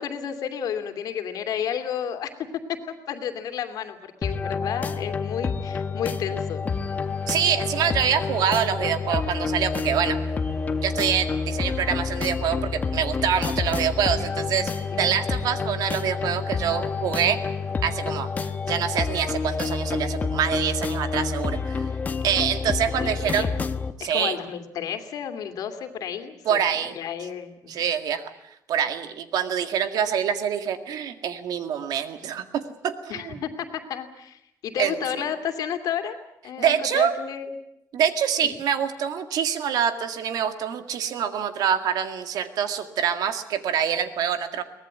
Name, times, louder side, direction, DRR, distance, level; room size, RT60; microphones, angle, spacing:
voice 1, 0.0-2.8 3.1-6.7 14.9-15.1 22.9-23.7 24.0-27.7 33.1-36.2 36.4-37.6, left 8 dB, 70° left, 6 dB, 2.6 m, -32 dB
sound 1, 4.2-23.9, left 5 dB, 25° left, 0.9 m, -28 dB
sound 2, 6.6-18.2, right 2 dB, 15° right, 7.8 m, -50 dB
voice 2, 7.3-10.2 10.8-14.7 15.0-17.4 17.8-21.9 22.2-23.5 24.0-24.4 26.5-27.0 27.7-28.3 28.7-33.0 34.8-34.9 36.6-37.1 37.9-44.6, right 8 dB, 75° right, 8 dB, 2.0 m, -25 dB
23.5 x 19.0 x 8.9 m, 0.81 s
cardioid pair, 180°, 7 cm